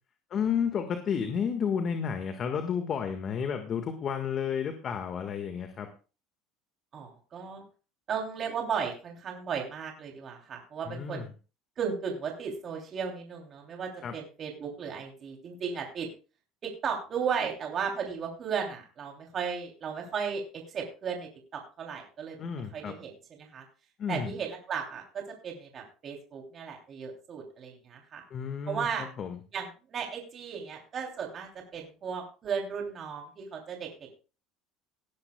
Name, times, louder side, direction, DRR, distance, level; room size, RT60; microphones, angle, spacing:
voice 1, 0.3-5.9 10.8-11.3 14.0-14.1 22.4-22.9 24.0-24.3 28.3-29.4, left 7 dB, 45° left, 6 dB, 1.6 m, -31 dB
voice 2, 6.9-7.6 8.1-11.3 11.8-16.1 16.6-22.4 22.7-23.6 24.1-28.2 28.7-29.1 29.5-34.1, right 6 dB, 40° right, 1 dB, 3.1 m, -35 dB
18.5 x 10.5 x 2.3 m, 0.34 s
supercardioid pair, 95°, 0 cm